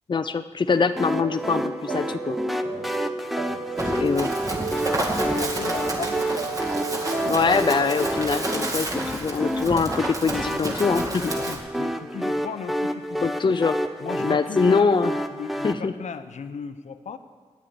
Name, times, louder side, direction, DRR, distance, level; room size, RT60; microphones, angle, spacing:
voice 1, 0.1-2.4 3.8-4.3 7.3-11.3 13.2-13.8 14.2-15.1 15.6-15.9, left 5 dB, 40° left, 10 dB, 0.5 m, -23 dB
sound 1, 1.0-15.7, equal, ahead, 0.8 m, -30 dB
sound 2, 1.2-8.6, right 3 dB, 50° right, 1.5 m, -31 dB
voice 2, 3.5-4.1 4.7-7.0 11.3-13.3 14.0-17.2, left 6 dB, 75° left, 10 dB, 0.7 m, -37 dB
Run, 3.8-11.6, right 1 dB, 30° right, 2.3 m, -30 dB
9.3 x 8.8 x 8.5 m, 1.5 s
cardioid pair, 60°, 12 cm